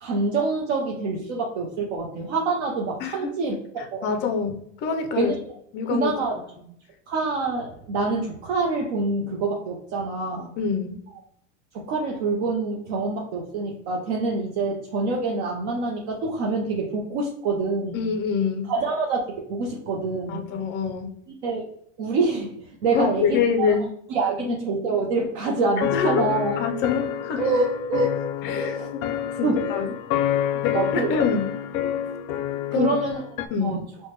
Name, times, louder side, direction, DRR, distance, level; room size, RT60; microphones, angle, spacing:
voice 1, 0.0-4.1 5.2-5.5 5.9-6.4 7.1-10.5 11.7-18.0 18.7-19.2 19.5-20.5 21.4-21.6 22.0-23.7 24.1-26.6 27.4-28.1 28.6-28.9 29.4-29.9 30.7-31.1 32.7-33.2 33.6-33.8, right 3 dB, 60° right, -1 dB, 0.7 m, -26 dB
voice 2, 4.0-5.3 5.7-6.1 10.6-11.0 17.9-18.7 20.3-21.1 22.9-23.9 25.9-26.2 26.6-27.4 28.4-29.0 29.4-29.9 30.6-31.5 32.7-32.9 33.5-33.8, left 6 dB, 30° left, 6 dB, 0.4 m, -25 dB
sound 1, 25.8-33.5, left 11 dB, 85° left, 0.5 m, -28 dB
4.6 x 2.2 x 2.9 m, 0.69 s
supercardioid pair, 145°, 39 cm